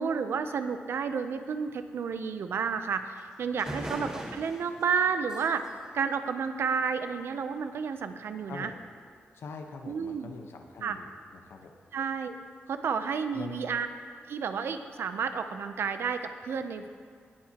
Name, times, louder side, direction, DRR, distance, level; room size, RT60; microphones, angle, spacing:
voice 1, 0.0-8.7 9.9-10.3 10.8-11.0 11.9-12.4 12.7-13.9 14.3-16.9, right 6 dB, 70° right, 9 dB, 0.5 m, -31 dB
sound 1, 3.2-3.3 3.6-7.0, right 1 dB, 15° right, 1.2 m, -42 dB
voice 2, 9.3-11.7 13.3-13.6, left 4 dB, 75° left, 4 dB, 1.0 m, -43 dB
18.0 x 7.4 x 2.9 m, 2.1 s
wide cardioid pair, 155°, 4 cm